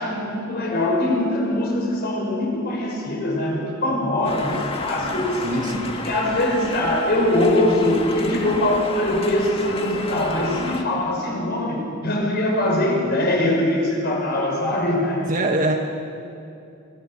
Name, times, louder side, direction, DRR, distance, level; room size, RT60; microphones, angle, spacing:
voice 1, 0.0-5.7 6.0-15.3, left 1 dB, 50° left, 0 dB, 6.0 m, -22 dB
sound 1, 4.2-10.8, left 2 dB, 30° left, 1.7 m, -31 dB
voice 2, 5.4-5.9 15.3-15.8, right 2 dB, 40° right, 2 dB, 1.4 m, -23 dB
25.5 x 18.0 x 7.6 m, 2.6 s
head